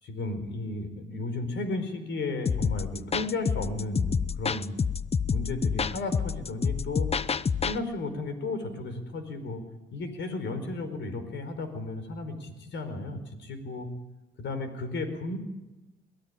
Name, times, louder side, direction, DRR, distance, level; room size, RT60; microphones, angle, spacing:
voice 1, 0.0-4.8 5.3-7.1 7.6-9.6 9.9-13.9 14.4-15.4, left 2 dB, 65° left, 9 dB, 4.8 m, -34 dB
sound 1, 2.5-7.8, left 6 dB, 30° left, 0.8 m, -28 dB
22.5 x 19.5 x 9.9 m, 1.0 s
cardioid pair, 90°, 20 cm